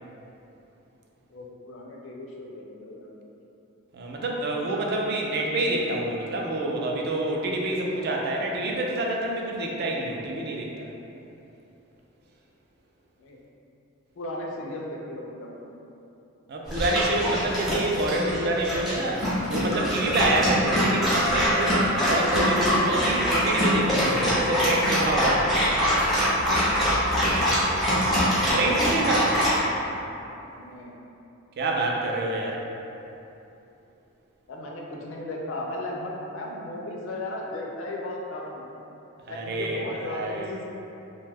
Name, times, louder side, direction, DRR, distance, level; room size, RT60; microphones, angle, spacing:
voice 1, 1.3-3.1 13.2-13.4 14.2-15.7 27.1-27.8 30.6-31.0 34.5-38.7 39.3-40.6, left 1 dB, 60° left, -2 dB, 0.4 m, -36 dB
voice 2, 3.9-10.9 16.5-25.6 28.5-29.3 31.6-32.6 39.3-40.5, right 2 dB, 45° right, -1 dB, 0.3 m, -27 dB
Dog, 16.7-29.6, equal, ahead, 0.6 m, -24 dB
2.6 x 2.2 x 3.4 m, 2.9 s
head